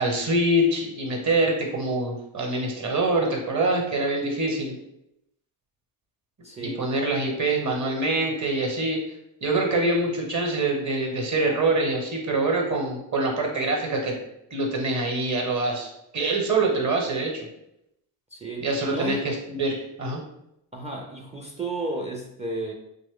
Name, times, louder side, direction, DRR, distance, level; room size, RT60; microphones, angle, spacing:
voice 1, 0.0-4.7 6.8-9.0 9.4-14.1 14.5-17.5 18.6-20.2, right 2 dB, 40° right, 1 dB, 1.0 m, -25 dB
voice 2, 6.4-6.9 18.3-19.3 20.7-22.7, right 2 dB, 15° right, 1 dB, 0.4 m, -33 dB
3.0 x 2.1 x 3.6 m, 0.82 s
supercardioid pair, 60°, 44 cm